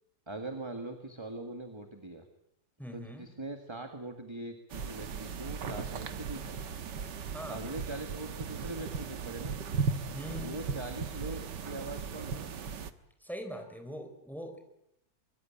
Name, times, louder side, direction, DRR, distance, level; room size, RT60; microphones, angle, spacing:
voice 1, 0.3-2.3 2.9-6.6 7.5-9.5 10.4-12.7, right 2 dB, 15° right, 5 dB, 1.9 m, -42 dB
voice 2, 2.8-3.3 7.3-7.6 10.1-10.6 13.2-14.7, equal, ahead, 6 dB, 3.9 m, -42 dB
sound 1, 4.7-12.9, right 5 dB, 70° right, 1.9 m, -37 dB
24.0 x 23.0 x 8.8 m, 0.81 s
omnidirectional pair, 2.0 m